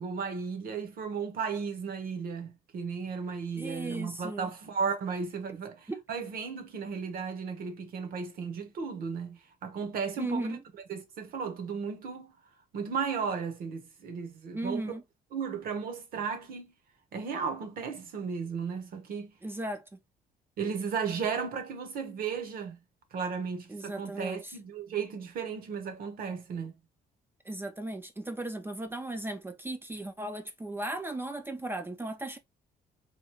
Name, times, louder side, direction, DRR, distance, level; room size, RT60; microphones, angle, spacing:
voice 1, 0.0-10.6 10.9-12.3 12.7-14.9 15.3-16.7 17.1-19.3 20.6-22.8 23.1-26.7, right 6 dB, 60° right, 1.0 m, -35 dB
voice 2, 3.6-4.5 5.9-6.0 10.2-10.6 14.5-15.0 19.4-20.0 23.7-24.5 27.5-32.4, right 2 dB, 15° right, 0.4 m, -36 dB
3.0 x 2.3 x 3.1 m
cardioid pair, 110°, 17 cm